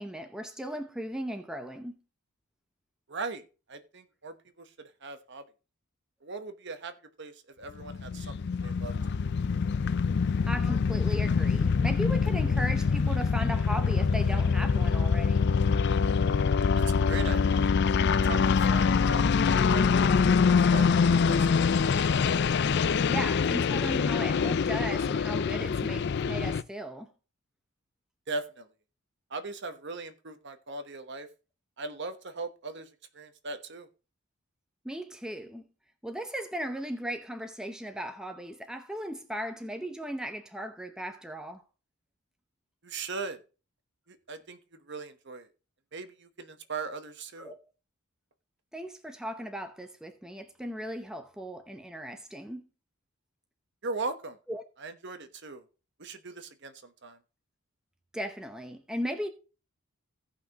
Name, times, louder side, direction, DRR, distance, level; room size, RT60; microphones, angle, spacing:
voice 1, 0.0-2.0 10.5-15.5 23.1-27.1 34.8-35.6 36.0-41.6 47.4-47.6 48.7-52.7 54.5-54.6 58.1-59.3, equal, 5° right, 0.7 m, -37 dB
voice 2, 3.1-3.4 3.7-4.7 5.0-5.4 6.2-6.9 7.2-8.4 8.6-8.9 16.8-17.7 18.2-18.4 18.7-19.8 20.3-21.0 21.3-21.5 21.8-21.9 28.3-28.7 29.3-31.3 31.8-32.9 33.1-33.9 42.8-43.4 44.1-44.6 44.9-45.5 45.9-47.5 53.8-54.4 54.8-55.6 56.0-56.7 57.0-57.2, right 3 dB, 50° right, 1.1 m, -39 dB
sound 1, 7.8-26.6, left 5 dB, 50° left, 0.4 m, -25 dB
16.5 x 5.8 x 2.9 m
head